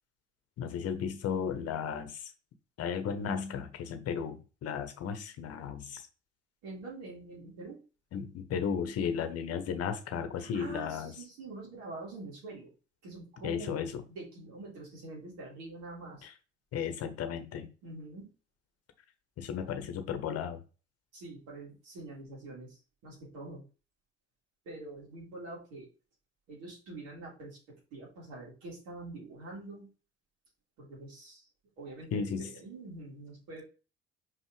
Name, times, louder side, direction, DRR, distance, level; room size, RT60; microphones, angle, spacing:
voice 1, 0.6-2.3 2.8-6.1 8.1-11.1 13.4-14.0 16.2-16.3 16.7-17.7 19.4-20.6 32.1-32.5, left 7 dB, 45° left, 9 dB, 1.0 m, -34 dB
voice 2, 6.6-7.8 10.4-12.7 13.0-13.8 14.1-16.3 17.8-18.3 21.1-23.6 24.7-25.9 26.5-29.9 30.8-31.5 31.8-33.6, right 2 dB, 60° right, -3 dB, 3.5 m, -45 dB
5.5 x 5.4 x 3.2 m, 0.33 s
figure-of-eight pair, 55°, 33 cm